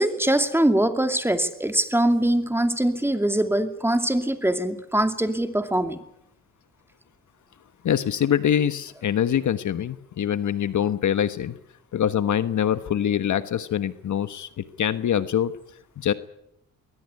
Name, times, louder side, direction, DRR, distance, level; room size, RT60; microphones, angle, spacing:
voice 1, 0.0-6.0, right 1 dB, 5° right, 7 dB, 2.5 m, -22 dB
voice 2, 7.8-11.5 11.9-15.5 16.0-16.1, left 9 dB, 55° left, 12 dB, 1.3 m, -24 dB
21.5 x 19.5 x 9.7 m, 0.78 s
cardioid pair, 90°, 35 cm